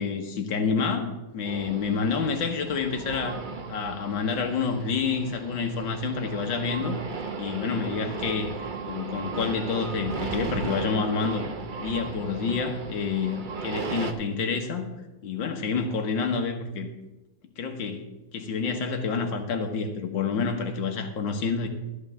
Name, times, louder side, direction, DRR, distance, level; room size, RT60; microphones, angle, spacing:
voice 1, 0.0-3.4 3.7-7.0 7.4-8.5 8.8-11.5 11.8-14.9 15.2-16.9 17.6-21.7, left 5 dB, 75° left, 5 dB, 2.0 m, -28 dB
sound 1, 1.4-14.1, right 4 dB, 50° right, 0.5 m, -36 dB
13.5 x 4.8 x 8.8 m, 1.0 s
omnidirectional pair, 2.1 m